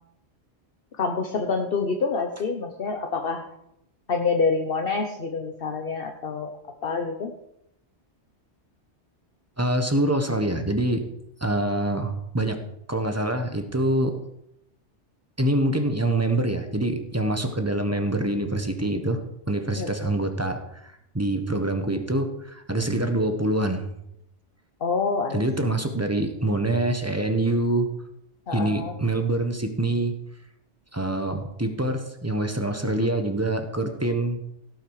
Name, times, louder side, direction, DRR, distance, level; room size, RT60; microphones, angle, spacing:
voice 1, 1.0-3.5 4.1-6.5 6.8-7.3 19.8-19.9 24.8-25.8 28.5-28.9, left 4 dB, 55° left, 4 dB, 1.2 m, -27 dB
voice 2, 9.6-11.0 11.4-12.6 12.9-14.2 15.4-19.2 19.5-23.9 25.3-27.9 28.5-30.1 30.9-34.4, right 1 dB, 15° right, 6 dB, 1.3 m, -25 dB
17.0 x 8.8 x 4.9 m, 0.80 s
omnidirectional pair, 1.2 m